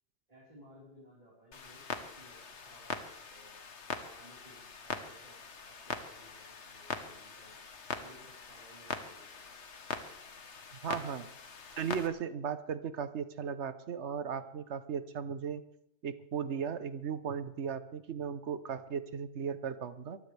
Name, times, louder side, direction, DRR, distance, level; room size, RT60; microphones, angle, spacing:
voice 1, 0.3-3.6 4.0-7.6 8.0-9.6 10.8-11.0, equal, 35° right, -6 dB, 4.4 m, -59 dB
Clock, 1.5-12.1, left 5 dB, 85° left, 1.6 m, -42 dB
voice 2, 10.8-11.3 11.8-15.6 16.0-20.2, right 7 dB, 80° right, 12 dB, 1.2 m, -36 dB
23.5 x 15.0 x 3.4 m, 0.75 s
omnidirectional pair, 1.2 m